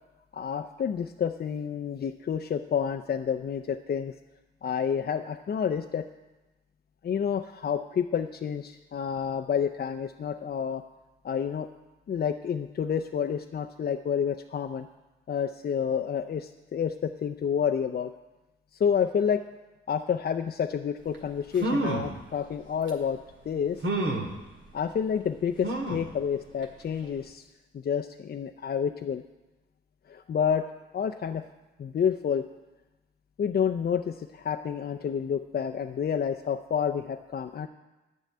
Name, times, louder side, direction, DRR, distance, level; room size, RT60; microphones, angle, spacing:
voice 1, 0.3-4.1 4.6-6.1 7.0-10.8 11.2-11.7 12.1-14.9 15.3-18.1 18.7-19.4 19.9-23.2 23.5-23.8 24.7-27.4 27.7-29.2 30.1-30.7 30.9-31.4 31.8-32.5 33.4-37.7, left 7 dB, 50° left, 5 dB, 0.5 m, -29 dB
sound 1, 21.1-21.2 21.5-22.1 22.9-23.0 23.8-24.3 25.6-26.1 26.6-26.7 27.0-27.1, right 2 dB, 65° right, 2.0 m, -29 dB
10.5 x 5.4 x 8.5 m, 1.1 s
supercardioid pair, 55°, 21 cm